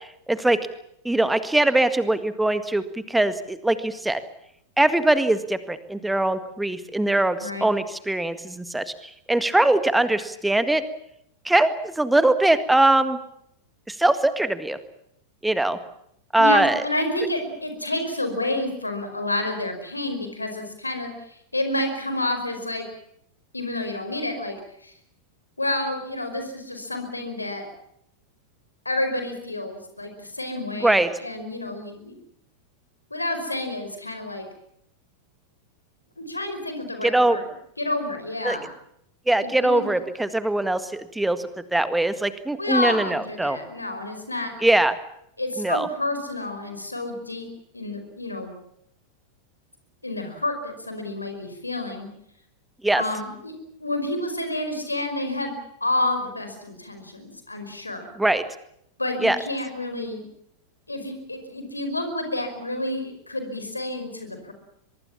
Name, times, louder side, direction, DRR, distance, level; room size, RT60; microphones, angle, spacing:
voice 1, 0.3-0.7 1.1-4.2 4.8-8.8 9.3-10.8 11.5-13.2 13.9-14.8 15.4-15.8 16.3-16.8 30.8-31.1 37.0-37.4 38.4-38.6 39.3-43.6 44.6-44.9 45.6-45.9 52.8-53.0 58.2-58.4 59.2-59.4, right 2 dB, 5° right, 12 dB, 1.8 m, -21 dB
voice 2, 7.4-7.7 16.3-22.8 23.5-24.6 24.8-24.9 25.6-27.6 28.8-32.1 33.1-34.5 36.2-37.4 37.8-38.7 39.4-39.9 42.6-44.5 45.4-47.5 47.7-48.5 50.0-52.1 53.0-53.5 53.8-55.5 55.8-58.1 59.0-60.2 60.9-64.5, left 1 dB, 85° left, 7 dB, 5.1 m, -29 dB
23.5 x 23.0 x 7.3 m, 0.74 s
figure-of-eight pair, 90°, 0 cm